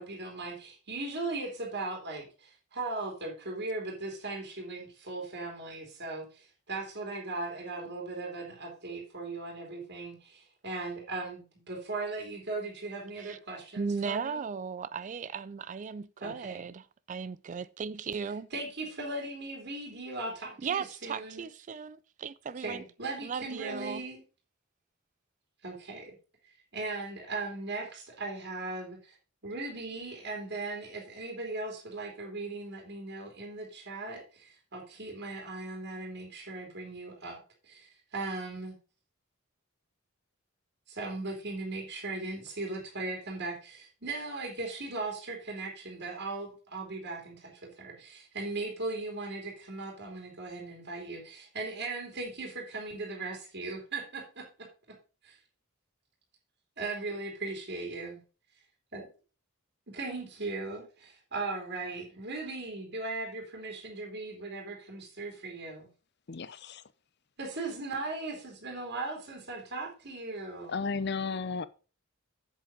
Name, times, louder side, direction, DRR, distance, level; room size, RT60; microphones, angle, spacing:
voice 1, 0.0-14.4 16.2-16.6 18.5-21.5 22.6-24.2 25.6-26.1 26.4-29.1 29.4-38.7 40.9-47.5 47.8-54.7 55.2-55.4 56.8-58.2 58.9-59.0 59.9-65.9 67.4-70.8, right 3 dB, 55° right, 3.3 m, -38 dB
voice 2, 13.8-18.5 20.6-22.8 23.2-24.0, right 6 dB, 40° right, 0.4 m, -36 dB
voice 3, 66.3-66.8 70.7-71.7, left 4 dB, 55° left, 0.7 m, -33 dB
8.0 x 7.5 x 5.0 m
head